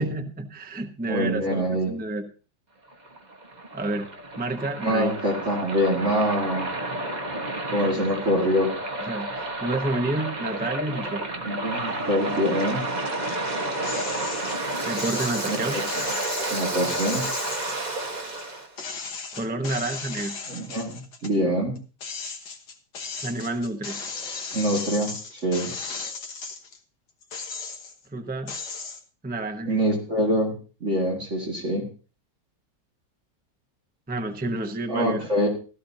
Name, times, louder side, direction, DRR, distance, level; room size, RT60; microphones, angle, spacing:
voice 1, 0.0-2.3 3.7-4.1 4.4-5.1 9.0-11.6 14.9-15.8 19.3-20.3 23.2-24.1 28.1-28.5 29.2-30.0 34.1-35.3, right 2 dB, 10° right, 6 dB, 0.6 m, -30 dB
voice 2, 1.1-2.0 4.8-6.7 7.7-8.7 11.5-12.8 15.5-16.0 16.5-17.3 20.5-21.8 24.5-25.7 29.7-31.9 34.9-35.5, equal, 40° right, -1 dB, 2.5 m, -25 dB
Waves surf, 2.9-18.7, right 2 dB, 25° right, 1.4 m, -31 dB
sound 1, 13.8-14.6 15.0-18.4 18.8-21.4 21.8-26.8 27.2-28.0 28.5-29.0, left 4 dB, 70° left, 2.0 m, -36 dB
16.5 x 13.0 x 2.8 m, 0.36 s
omnidirectional pair, 1.9 m